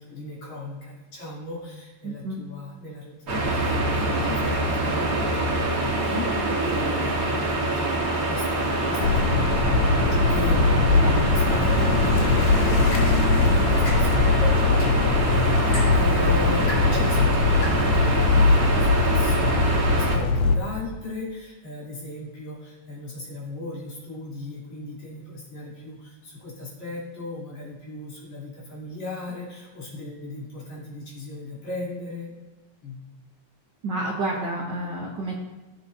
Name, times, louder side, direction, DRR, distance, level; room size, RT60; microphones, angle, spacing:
voice 1, 0.0-9.5 10.3-15.0 15.3-32.3 32.8-33.0, left 2 dB, 60° left, -7 dB, 4.3 m, -37 dB
voice 2, 2.0-2.4 11.0-11.4 33.8-35.3, right 2 dB, 60° right, -2 dB, 1.2 m, -30 dB
sound 1, 3.3-20.2, right 2 dB, 40° right, 1.4 m, -25 dB
sound 2, 9.0-20.5, left 4 dB, 85° left, 2.4 m, -21 dB
sound 3, 12.6-18.5, left 1 dB, 45° left, 4.2 m, -40 dB
17.5 x 7.0 x 2.7 m, 1.2 s
omnidirectional pair, 3.6 m